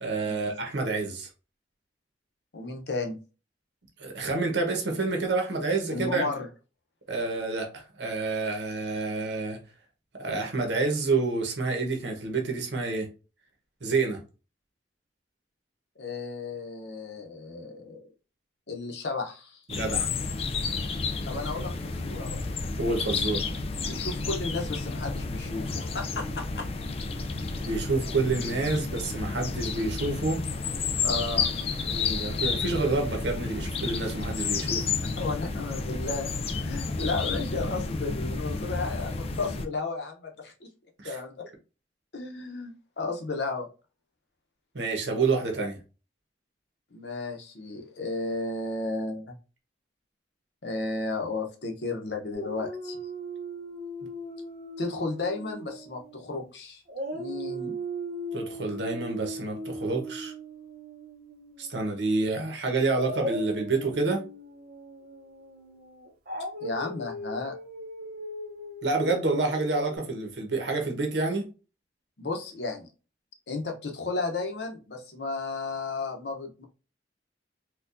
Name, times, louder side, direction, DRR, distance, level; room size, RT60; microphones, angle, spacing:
voice 1, 0.0-1.3 4.0-6.2 7.1-9.6 10.2-13.1 13.8-14.2 19.7-20.1 22.8-23.4 27.6-30.4 31.9-34.9 41.0-41.2 44.7-45.8 58.3-60.3 61.6-64.2 68.8-71.4, right 3 dB, 75° right, 1.0 m, -28 dB
voice 2, 2.5-3.2 5.9-6.5 16.0-18.0 18.7-19.6 21.3-22.4 23.9-26.6 31.0-31.5 35.2-40.7 41.0-41.3 42.1-43.7 46.9-49.3 50.6-53.0 54.8-56.8 57.1-57.7 66.6-67.5 72.2-72.9 73.5-76.6, left 3 dB, 70° left, 0.8 m, -33 dB
sound 1, 19.7-39.7, left 4 dB, 35° left, 0.3 m, -31 dB
Dog, 52.3-56.5 56.9-61.9 63.0-70.0, right 1 dB, 50° right, 0.8 m, -38 dB
4.3 x 2.3 x 2.5 m
head